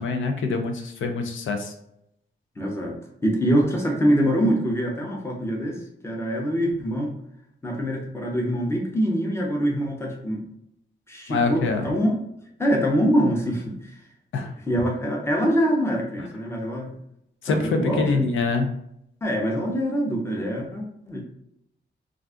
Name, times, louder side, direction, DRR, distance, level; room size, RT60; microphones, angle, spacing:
voice 1, 0.0-1.7 11.3-11.9 14.3-14.5 17.4-18.7, left 3 dB, 90° left, 5 dB, 0.5 m, -24 dB
voice 2, 2.6-3.0 3.2-7.1 7.6-10.4 11.1-12.2 12.6-13.7 14.7-16.9 17.5-18.2 19.2-21.2, equal, 15° left, -1 dB, 0.6 m, -24 dB
2.5 x 2.3 x 3.6 m, 0.78 s
wide cardioid pair, 155°, 19 cm